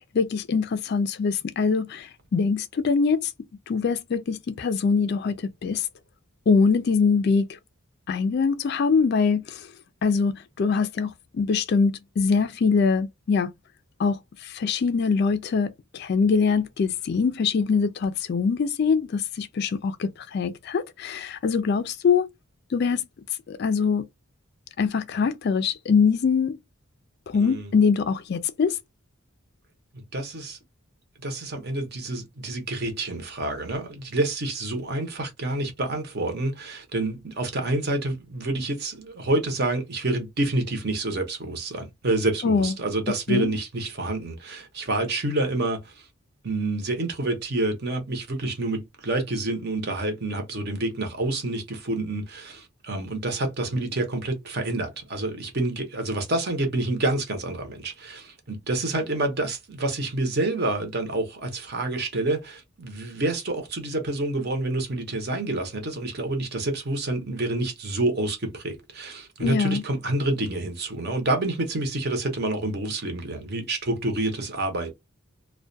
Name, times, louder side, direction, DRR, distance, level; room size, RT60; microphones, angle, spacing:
voice 1, 0.1-3.3 3.7-5.9 6.5-7.5 8.1-9.7 10.0-13.5 14.0-22.3 22.7-23.0 23.5-24.1 24.8-26.6 27.3-28.8 42.4-42.7 43.3-43.5 69.4-69.8, left 5 dB, 50° left, 0.3 m, -23 dB
voice 2, 27.3-27.7 30.1-30.6 31.2-46.1 46.4-74.9, right 2 dB, 50° right, 0.7 m, -28 dB
2.3 x 2.1 x 2.5 m
head